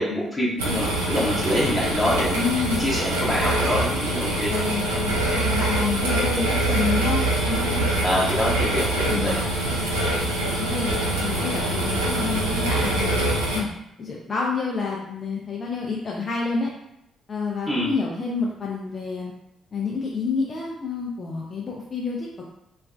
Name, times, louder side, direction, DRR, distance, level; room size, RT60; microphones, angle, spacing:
voice 1, 0.0-2.4 2.8-4.5 8.0-9.4 17.7-17.9, left 1 dB, 25° left, -5 dB, 0.8 m, -25 dB
sound 1, 0.6-13.6, right 1 dB, 75° right, 0.5 m, -24 dB
voice 2, 2.3-2.8 4.5-7.8 9.1-9.4 10.6-10.9 11.2-13.7 14.0-16.7 17.3-19.3 19.7-22.4, left 4 dB, 40° left, -3 dB, 0.4 m, -28 dB
3.1 x 2.1 x 2.4 m, 0.81 s
figure-of-eight pair, 40°, 0 cm